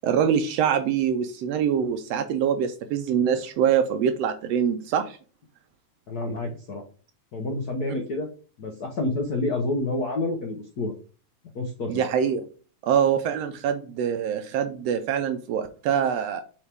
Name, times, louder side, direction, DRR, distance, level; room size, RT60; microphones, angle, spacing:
voice 1, 0.0-5.2 11.9-12.4 12.8-16.4, right 8 dB, 75° right, 8 dB, 1.5 m, -24 dB
voice 2, 6.1-6.8 7.3-8.3 8.6-10.9 11.5-12.0, left 2 dB, 90° left, 3 dB, 0.8 m, -28 dB
7.3 x 4.7 x 3.5 m, 0.38 s
omnidirectional pair, 3.3 m